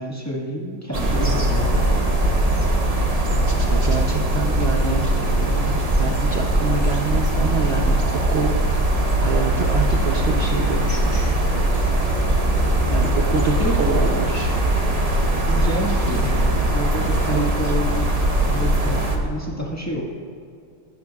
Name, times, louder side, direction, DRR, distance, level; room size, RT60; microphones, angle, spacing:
voice 1, 0.0-2.1 13.3-13.8 15.5-20.0, equal, 10° left, -3 dB, 1.4 m, -29 dB
sound 1, 0.9-19.2, right 1 dB, 25° right, 0.9 m, -20 dB
voice 2, 3.7-8.0 8.3-11.4 12.9-14.5 17.3-17.7, right 5 dB, 65° right, 1 dB, 0.6 m, -27 dB
17.5 x 11.0 x 2.4 m, 2.4 s
omnidirectional pair, 2.0 m